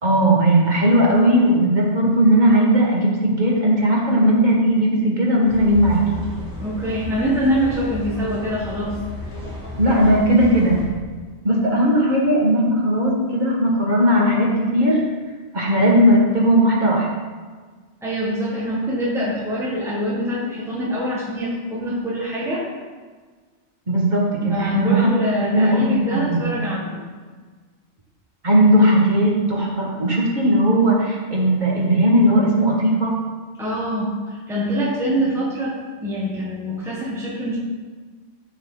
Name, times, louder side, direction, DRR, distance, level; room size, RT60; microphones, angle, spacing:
voice 1, 0.0-6.0 9.8-10.8 11.4-15.0 15.5-17.1 23.9-25.1 25.5-26.5 28.4-33.2, right 1 dB, 40° right, -3 dB, 1.9 m, -17 dB
sound 1, 5.5-10.9, left 2 dB, 15° left, 2.5 m, -33 dB
voice 2, 6.6-9.0 18.0-22.6 24.5-27.0 33.6-37.6, equal, ahead, -6 dB, 1.6 m, -24 dB
13.0 x 4.6 x 3.9 m, 1.4 s
omnidirectional pair, 1.2 m